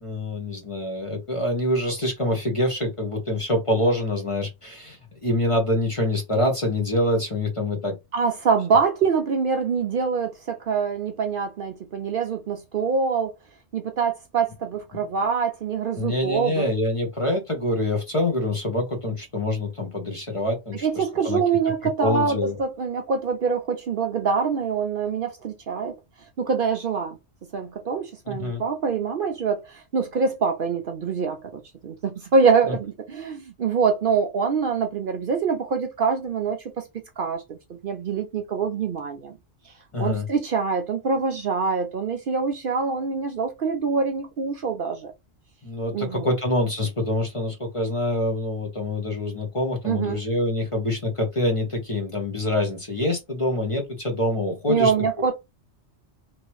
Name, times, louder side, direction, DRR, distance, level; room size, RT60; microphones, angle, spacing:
voice 1, 0.0-7.9 16.0-21.4 22.0-22.6 28.3-28.6 32.7-32.8 39.9-40.2 45.6-54.9, left 1 dB, 30° left, 0.8 m, -25 dB
voice 2, 8.1-13.3 13.7-16.7 20.8-25.9 26.4-27.2 27.5-36.8 37.2-39.3 40.0-45.1 45.9-46.3 49.8-50.2 54.7-55.3, right 5 dB, 60° right, 0.7 m, -25 dB
3.0 x 2.8 x 3.0 m
omnidirectional pair, 1.2 m